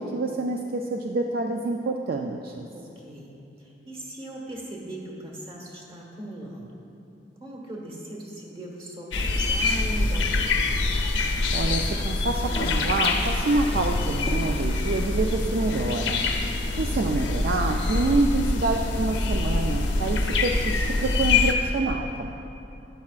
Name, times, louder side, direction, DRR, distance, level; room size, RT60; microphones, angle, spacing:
voice 1, 0.0-2.7 11.5-16.2 16.8-22.3, right 2 dB, 55° right, 2 dB, 0.4 m, -27 dB
voice 2, 2.7-6.8 7.4-10.8, right 1 dB, 30° right, -2 dB, 1.4 m, -39 dB
sound 1, 9.1-21.5, left 3 dB, 80° left, 0.7 m, -25 dB
Toilet flush, 12.4-20.4, left 2 dB, 35° left, 0.5 m, -41 dB
11.5 x 9.4 x 2.4 m, 2.8 s
head